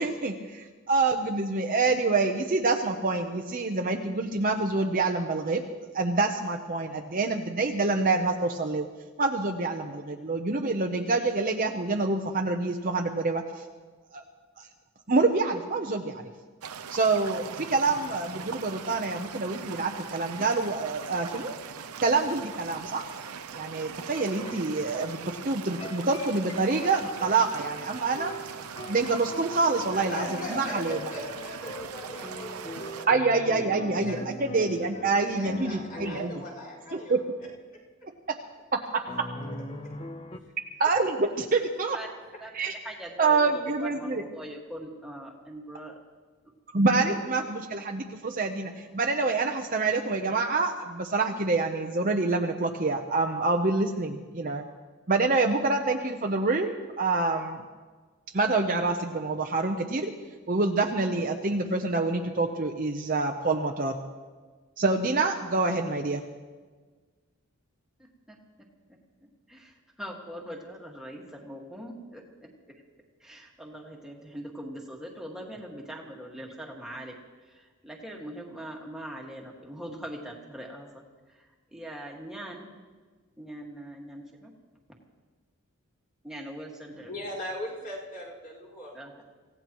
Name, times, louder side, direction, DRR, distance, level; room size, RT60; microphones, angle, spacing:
voice 1, 0.0-5.6 5.9-8.9 9.2-13.6 14.1-14.2 14.6-14.7 15.1-16.2 16.9-21.5 22.0-23.1 23.5-28.3 28.9-30.2 30.5-31.0 33.1-36.3 37.1-37.2 40.8-42.0 42.5-42.7 43.2-44.2 46.7-54.7 55.1-57.6 58.3-60.1 60.5-63.9 64.8-66.2, right 3 dB, 40° right, 3 dB, 0.8 m, -26 dB
sound 1, 16.6-33.1, right 6 dB, 90° right, 0.8 m, -41 dB
sound 2, 24.1-25.3 25.8-37.5 39.1-40.4, left 1 dB, 25° left, 0.7 m, -42 dB
voice 2, 29.9-33.6 33.9-34.4 35.2-37.2 86.9-88.9, equal, 40° left, -7 dB, 4.9 m, -40 dB
voice 3, 42.4-46.0 46.9-47.2 49.3-49.4 68.0-68.4 69.2-72.8 73.2-77.1 77.4-81.0 81.3-82.7 83.4-84.5 86.2-87.1 88.9-89.2, equal, 5° right, -1 dB, 1.8 m, -42 dB
26.5 x 16.5 x 3.1 m, 1.4 s
head